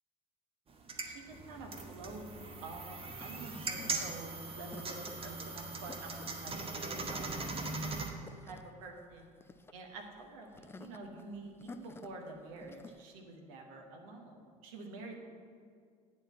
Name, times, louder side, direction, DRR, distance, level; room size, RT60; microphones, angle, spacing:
sound 1, 0.7-8.1, right 3 dB, 30° right, 1.0 m, -40 dB
voice 1, 1.0-6.5 6.8-7.5 8.4-9.3 9.7-15.3, right 2 dB, 60° right, 2 dB, 1.1 m, -48 dB
sound 2, 2.4-13.0, left 3 dB, 10° left, 0.4 m, -54 dB
9.2 x 4.3 x 7.0 m, 2.1 s
figure-of-eight pair, 60°, 20 cm